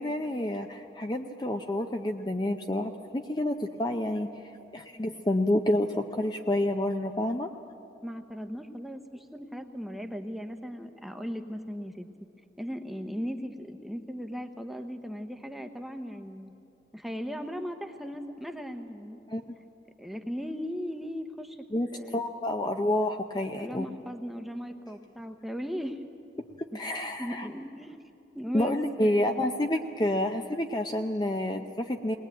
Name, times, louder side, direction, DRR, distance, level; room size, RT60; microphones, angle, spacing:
voice 1, 0.0-4.3 4.7-7.5 19.3-19.6 21.7-21.9 22.1-23.9 26.7-27.5 28.5-32.2, left 1 dB, 25° left, 4 dB, 0.6 m, -29 dB
voice 2, 8.0-12.1 12.6-16.5 16.9-19.2 20.0-21.6 21.9-22.2 23.6-26.0 26.7-28.0 28.3-29.4, equal, ahead, 6 dB, 0.9 m, -37 dB
20.5 x 19.5 x 9.1 m, 2.7 s
head